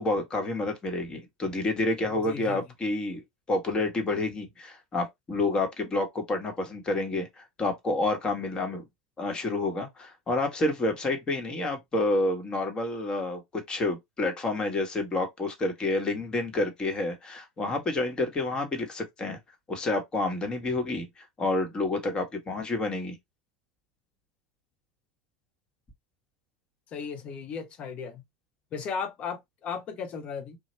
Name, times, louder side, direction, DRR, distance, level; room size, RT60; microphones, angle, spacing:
voice 1, 0.0-8.8 9.2-19.4 19.7-23.2, left 2 dB, 30° left, 1.2 m, -29 dB
voice 2, 2.1-2.6 26.9-28.2 28.7-30.6, left 6 dB, 45° left, 0.9 m, -36 dB
3.1 x 2.2 x 3.0 m
hypercardioid pair, 90°, 3 cm